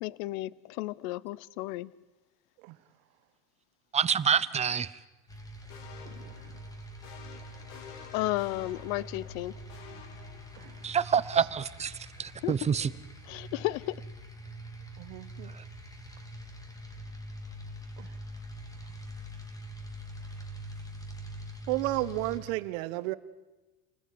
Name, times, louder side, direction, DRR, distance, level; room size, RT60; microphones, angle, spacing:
voice 1, 0.0-1.9 8.1-9.5 12.4-12.5 13.2-14.0, left 18 dB, 80° left, 0.8 m, -33 dB
voice 2, 3.9-4.9 10.8-11.9 12.2-12.9, right 7 dB, 15° right, 0.8 m, -27 dB
sound 1, 5.3-22.4, equal, 10° left, 2.8 m, -44 dB
sound 2, 5.7-11.0, left 6 dB, 50° left, 3.7 m, -51 dB
voice 3, 6.0-6.5 10.6-10.9 11.4-11.5 15.0-15.5 18.0-18.1 21.7-23.2, right 18 dB, 75° right, 1.5 m, -33 dB
28.5 x 20.0 x 9.5 m
cardioid pair, 160°, 42 cm